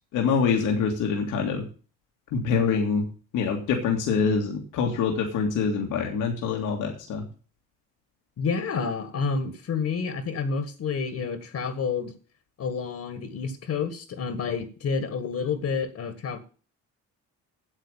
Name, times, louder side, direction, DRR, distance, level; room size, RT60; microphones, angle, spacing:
voice 1, 0.1-1.7 2.3-3.1 3.3-7.3, left 5 dB, 90° left, 1 dB, 2.2 m, -25 dB
voice 2, 8.4-12.1 12.6-16.4, left 5 dB, 60° left, 10 dB, 1.8 m, -29 dB
8.9 x 8.0 x 8.8 m, 0.39 s
cardioid pair, 90°, 30 cm